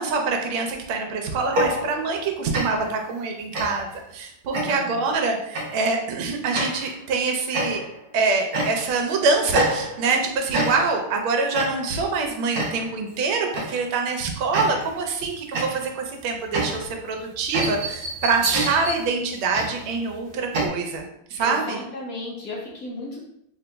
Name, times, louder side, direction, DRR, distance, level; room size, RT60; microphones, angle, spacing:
voice 1, 0.0-7.8 8.1-21.0 21.3-21.8, right 4 dB, 85° right, 3 dB, 1.5 m, -25 dB
sound 1, 1.4-2.3 2.5-3.0 3.5-4.0 4.5-5.0 5.5-5.8 6.5-7.0 7.5-8.0 8.5-9.0 9.5-10.2 10.5-11.1 11.5-12.0 12.5-13.0 13.5-13.9 14.5-15.0 15.5-20.7, right 1 dB, 60° right, 1.2 m, -28 dB
voice 2, 4.6-5.0 18.4-18.6 21.4-23.2, left 2 dB, 60° left, -2 dB, 1.0 m, -34 dB
3.9 x 3.6 x 2.2 m, 0.76 s
omnidirectional pair, 2.2 m